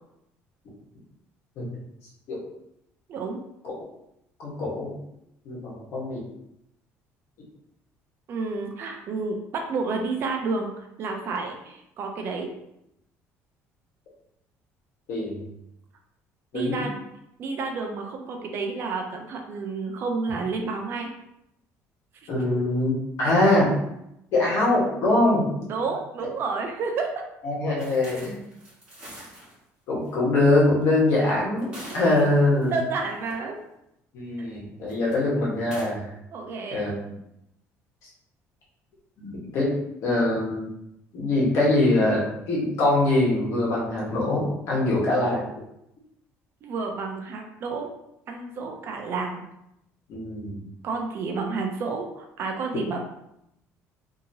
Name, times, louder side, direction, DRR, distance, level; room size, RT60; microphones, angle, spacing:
voice 1, 3.1-3.4 8.3-12.5 16.5-16.9 17.4-21.1 22.2-22.4 25.7-27.2 31.1-31.4 31.9-33.6 34.4-34.5 36.3-36.8 46.6-47.9 48.3-49.4 50.8-53.0, right 4 dB, 45° right, 2 dB, 0.4 m, -30 dB
voice 2, 4.4-4.9 5.4-6.2 15.1-15.4 16.5-16.9 22.3-22.9 23.2-23.7 24.3-25.6 27.4-28.4 29.9-31.7 31.9-32.8 34.1-36.1 36.7-36.9 39.2-39.7 40.0-40.7 41.1-45.5 50.1-50.6, left 2 dB, 60° left, -5 dB, 1.2 m, -23 dB
sound 1, 27.8-29.5 30.1-30.2 31.2-32.7 33.1-33.3 34.8-35.1 35.6-35.9, right 1 dB, 20° right, 1.5 m, -43 dB
2.8 x 2.7 x 2.7 m, 0.81 s
cardioid pair, 155°, 5 cm